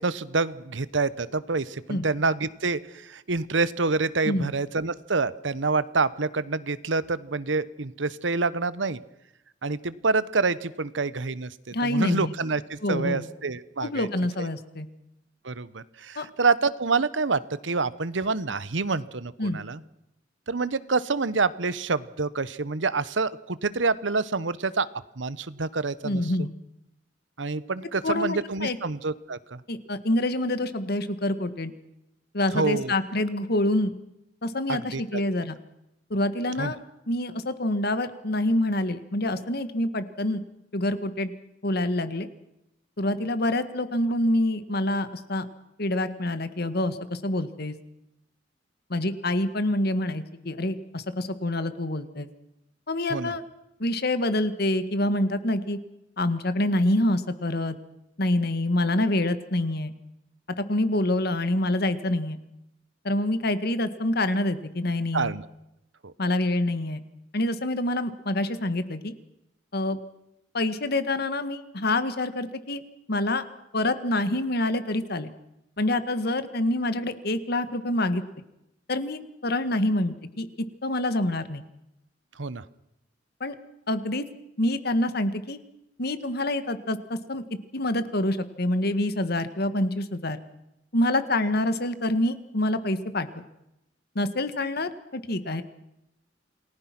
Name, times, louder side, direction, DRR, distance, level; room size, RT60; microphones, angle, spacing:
voice 1, 0.0-9.0 9.6-11.5 11.8-14.1 14.4-14.5 15.4-19.8 20.5-24.9 25.2-26.2 27.4-29.6 32.5-32.9 34.7-35.2 36.6-36.7 53.1-53.3 65.1-65.4 66.0-66.1 82.4-82.6, right 4 dB, 85° right, 16 dB, 1.1 m, -27 dB
voice 2, 11.7-12.3 12.8-13.2 13.8-14.9 16.2-16.3 19.4-19.6 26.0-26.5 28.0-28.8 29.7-31.7 32.3-34.0 34.4-35.6 36.1-36.8 37.1-40.4 40.7-41.3 41.6-42.3 43.0-45.5 45.8-47.8 48.9-52.3 52.9-53.4 53.8-55.8 56.2-57.8 58.2-59.9 60.7-62.4 63.0-65.3 66.2-67.0 67.3-69.2 69.7-70.0 70.5-72.8 73.1-73.4 73.7-75.3 75.8-78.2 78.9-80.5 80.8-81.6 83.4-83.6 83.9-84.2 84.6-85.6 86.0-87.4 87.7-90.4 90.9-93.3 94.2-95.6, left 1 dB, 60° left, 11 dB, 1.7 m, -26 dB
28.5 x 19.5 x 6.1 m, 0.85 s
head